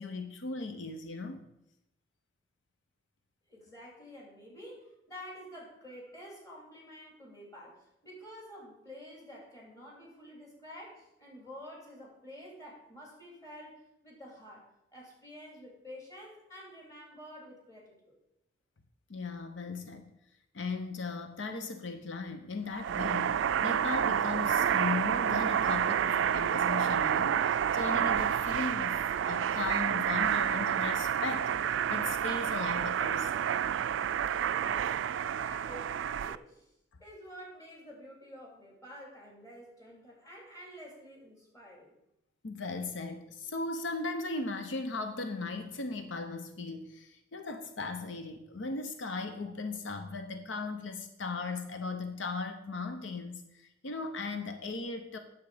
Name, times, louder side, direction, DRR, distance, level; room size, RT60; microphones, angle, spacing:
voice 1, 0.0-1.4 19.1-20.1 20.5-33.3 42.4-55.2, left 3 dB, 85° left, 7 dB, 0.8 m, -37 dB
voice 2, 3.5-18.1 34.5-36.7 37.0-41.9, equal, 20° left, -3 dB, 3.2 m, -49 dB
sound 1, 22.7-36.3, right 9 dB, 80° right, 0.3 m, -29 dB
9.3 x 7.1 x 5.0 m, 0.83 s
head